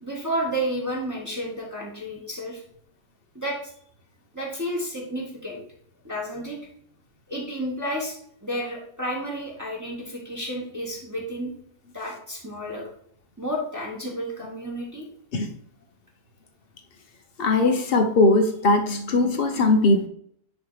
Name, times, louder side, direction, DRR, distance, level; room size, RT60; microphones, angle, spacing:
voice 1, 0.0-2.6 3.3-3.6 4.3-5.6 6.0-6.6 7.3-8.2 8.4-11.5 11.9-12.9 13.4-15.1, equal, 10° right, 1.7 m, -31 dB
voice 2, 17.4-20.1, left 2 dB, 45° left, 1.0 m, -20 dB
9.8 x 3.4 x 4.9 m
omnidirectional pair, 1.6 m